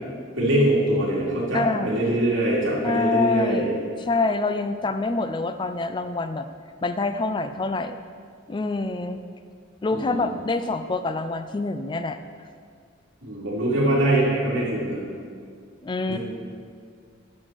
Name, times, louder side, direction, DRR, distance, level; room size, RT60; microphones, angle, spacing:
voice 1, 0.4-3.7 9.9-10.2 13.2-15.0 16.1-16.2, right 1 dB, 75° right, -5 dB, 2.5 m, -23 dB
voice 2, 1.5-2.0 2.8-3.7 4.0-6.5 6.8-8.0 8.5-9.2 9.8-12.2 15.8-16.2, left 3 dB, 25° left, 9 dB, 0.3 m, -26 dB
10.5 x 6.3 x 4.5 m, 2.1 s
head